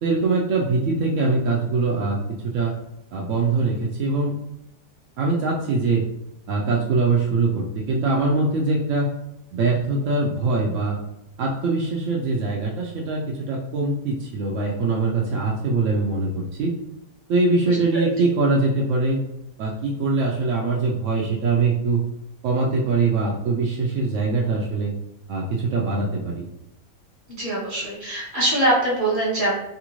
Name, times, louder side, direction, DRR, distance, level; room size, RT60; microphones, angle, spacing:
voice 1, 0.0-2.2 2.5-2.7 3.1-4.3 5.2-6.0 6.5-9.1 9.5-11.0 11.4-16.8 17.3-19.2 19.6-22.0 22.4-24.9 25.3-26.4, right 3 dB, 75° right, -3 dB, 0.7 m, -22 dB
voice 2, 17.7-18.0 27.3-29.6, right 1 dB, 30° right, -6 dB, 1.3 m, -23 dB
3.3 x 2.4 x 3.0 m, 0.84 s
omnidirectional pair, 1.9 m